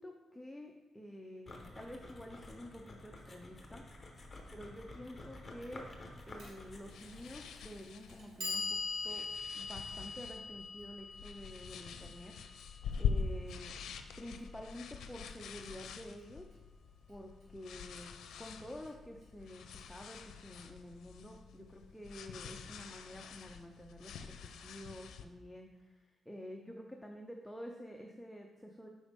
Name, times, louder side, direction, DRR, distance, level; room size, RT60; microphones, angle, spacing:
voice 1, 0.0-3.8 4.5-5.9 6.3-8.8 9.0-9.3 9.5-12.3 13.0-13.7 14.2-16.5 17.1-18.1 18.4-28.9, left 1 dB, 5° left, 1 dB, 0.5 m, -49 dB
sound 1, 1.5-7.8, left 2 dB, 20° left, 1.0 m, -51 dB
sound 2, 6.3-25.2, left 6 dB, 85° left, 0.5 m, -44 dB
Clock, 6.4-6.5 7.5-7.6 8.1-14.1, left 4 dB, 90° right, 2.2 m, -43 dB
7.9 x 5.1 x 3.5 m, 1.1 s
cardioid pair, 145°, 0 cm